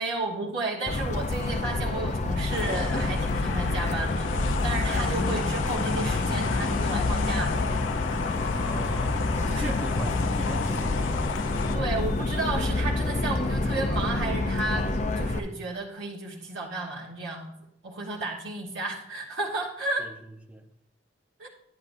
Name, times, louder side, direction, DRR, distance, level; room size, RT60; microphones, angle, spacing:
voice 1, 0.0-7.6 9.5-9.8 11.7-17.5 17.8-20.1 21.4-21.5, right 2 dB, 85° right, 1.3 m, -33 dB
Motor vehicle (road) / Siren, 0.9-15.4, left 2 dB, 40° left, 0.6 m, -27 dB
sound 1, 2.5-11.8, left 6 dB, 85° left, 0.5 m, -35 dB
voice 2, 8.5-11.8 20.0-20.1 20.5-20.7, equal, 5° right, 0.7 m, -40 dB
11.0 x 10.5 x 2.6 m
head